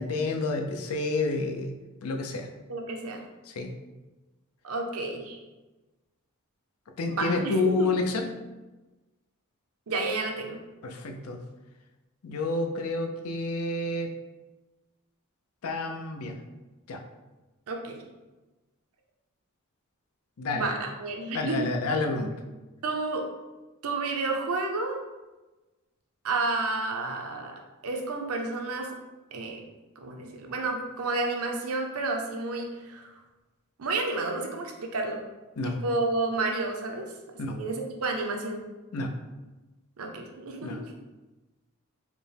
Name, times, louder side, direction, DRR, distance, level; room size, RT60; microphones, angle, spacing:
voice 1, 0.0-1.7 2.0-2.5 3.5-3.7 7.0-8.2 10.8-11.4 12.2-14.1 15.6-16.4 16.9-17.0 20.4-20.7 21.3-22.3 35.6-35.8 37.4-37.6 38.9-39.1 40.6-40.8, left 3 dB, 75° left, 4 dB, 0.5 m, -29 dB
voice 2, 2.7-3.3 4.6-5.4 7.1-7.9 9.9-10.6 17.7-18.0 20.5-21.7 22.8-23.3 23.8-25.0 26.2-28.9 29.3-29.6 30.0-33.2 33.8-35.2 35.6-37.1 37.5-38.6 40.0-40.9, right 3 dB, 80° right, 2 dB, 0.6 m, -31 dB
5.0 x 2.1 x 3.3 m, 1.1 s
head